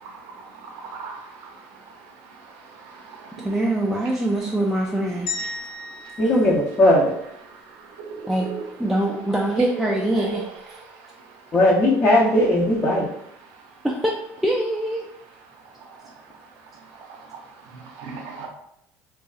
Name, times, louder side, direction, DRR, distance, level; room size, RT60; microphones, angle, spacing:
voice 1, 0.8-1.2 3.1-3.3 8.0-8.2 10.1-10.4 18.0-18.5, right 4 dB, 70° right, 2 dB, 0.6 m, -35 dB
voice 2, 3.4-5.3 8.3-8.5 8.8-10.5 13.8-14.2 14.4-15.1, right 1 dB, 5° right, -2 dB, 0.3 m, -23 dB
sound 1, 5.3-7.5, left 2 dB, 80° left, 0.6 m, -35 dB
voice 3, 6.2-7.1 11.5-13.1, left 1 dB, 35° left, -5 dB, 0.6 m, -18 dB
2.7 x 2.3 x 2.3 m, 0.76 s
supercardioid pair, 85°, 7 cm